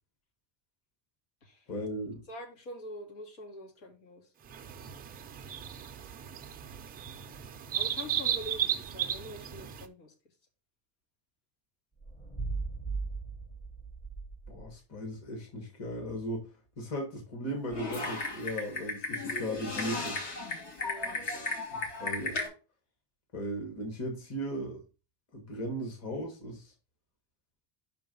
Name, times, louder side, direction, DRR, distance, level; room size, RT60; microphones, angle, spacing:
voice 1, 1.7-2.2 14.5-16.5 16.8-20.2 21.7-22.4 23.3-24.8 25.3-26.7, equal, 30° left, 1.6 m, -37 dB
voice 2, 2.3-4.3 7.7-10.1 20.8-21.6, left 1 dB, 75° left, 3.0 m, -45 dB
sound 1, 4.5-9.8, right 10 dB, 20° right, 0.4 m, -35 dB
sound 2, 12.0-14.8, right 4 dB, 10° left, 0.9 m, -38 dB
Typing, 17.7-22.5, left 3 dB, 55° left, 2.7 m, -35 dB
5.8 x 4.6 x 5.3 m
cardioid pair, 175°, 49 cm